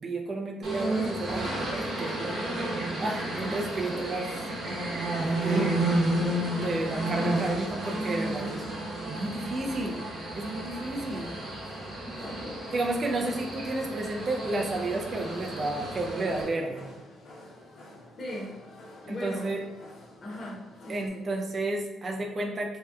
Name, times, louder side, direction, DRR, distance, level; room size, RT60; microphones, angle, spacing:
voice 1, 0.0-2.4 3.0-5.9 6.3-8.6 9.1-9.9 10.3-11.3 12.7-16.9 19.1-19.6 20.9-22.8, right 2 dB, 30° right, 1 dB, 0.3 m, -32 dB
sound 1, 0.6-16.4, right 1 dB, 50° right, 0.8 m, -32 dB
sound 2, 10.9-21.1, left 1 dB, 85° left, 0.8 m, -49 dB
voice 2, 12.0-12.6 18.2-18.5 19.0-19.5 20.2-20.6 20.8-21.2, equal, 35° left, -4 dB, 0.7 m, -38 dB
2.6 x 2.2 x 3.4 m, 1.1 s
cardioid pair, 150°, 0 cm